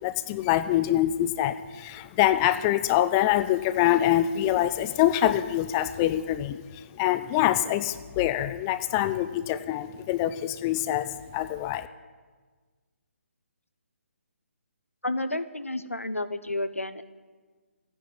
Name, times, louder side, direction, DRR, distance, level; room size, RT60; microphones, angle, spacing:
voice 1, 0.0-6.6 7.0-11.9, left 13 dB, 15° left, 12 dB, 0.4 m, -25 dB
voice 2, 15.0-17.0, left 1 dB, 85° left, 12 dB, 1.0 m, -31 dB
13.0 x 10.5 x 9.3 m, 1.4 s
figure-of-eight pair, 140°, 7 cm